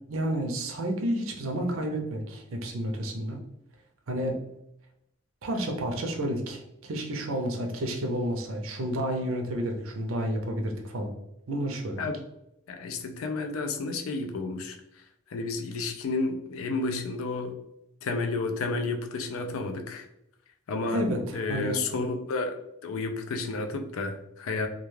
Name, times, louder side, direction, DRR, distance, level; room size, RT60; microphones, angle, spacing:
voice 1, 0.1-3.4 4.1-4.4 5.4-11.1 11.5-12.0 20.9-21.8, right 1 dB, 85° right, 3 dB, 0.5 m, -30 dB
voice 2, 12.7-14.8 15.3-17.6 18.0-20.1 20.7-21.0 21.3-24.7, left 3 dB, 90° left, 5 dB, 0.4 m, -31 dB
2.3 x 2.2 x 3.1 m, 0.81 s
head